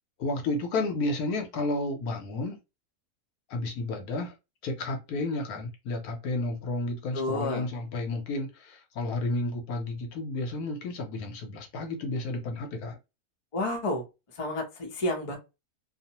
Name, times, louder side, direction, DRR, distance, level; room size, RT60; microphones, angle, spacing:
voice 1, 0.2-2.6 3.5-4.3 4.6-13.0, left 2 dB, 80° left, 1.2 m, -32 dB
voice 2, 7.1-7.7 13.5-14.0 14.4-15.4, left 1 dB, 30° left, 0.6 m, -30 dB
2.8 x 2.1 x 2.8 m
omnidirectional pair, 1.6 m